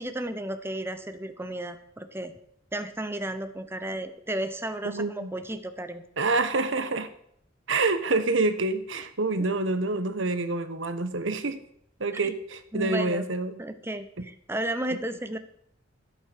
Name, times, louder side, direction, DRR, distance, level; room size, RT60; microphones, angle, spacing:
voice 1, 0.0-2.3 2.7-6.0 9.4-9.5 12.1-12.3 12.7-13.2 13.6-15.4, right 1 dB, 10° right, 9 dB, 0.9 m, -33 dB
voice 2, 4.8-5.3 6.2-7.1 7.7-11.6 12.0-13.6, right 3 dB, 70° right, 10 dB, 1.2 m, -27 dB
12.0 x 8.6 x 6.7 m, 0.70 s
head